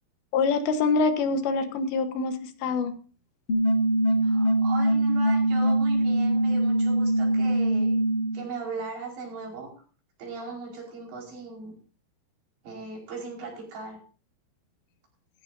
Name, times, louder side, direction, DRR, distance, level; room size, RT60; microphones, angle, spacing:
voice 1, 0.3-2.9, left 4 dB, 85° left, 8 dB, 3.5 m, -25 dB
sound 1, 3.5-8.4, right 1 dB, 45° left, 0.8 m, -23 dB
voice 2, 4.1-8.0 8.3-9.7 10.2-11.7 12.6-14.0, right 3 dB, 85° right, -1 dB, 7.1 m, -38 dB
16.0 x 15.0 x 2.7 m, 0.38 s
omnidirectional pair, 4.9 m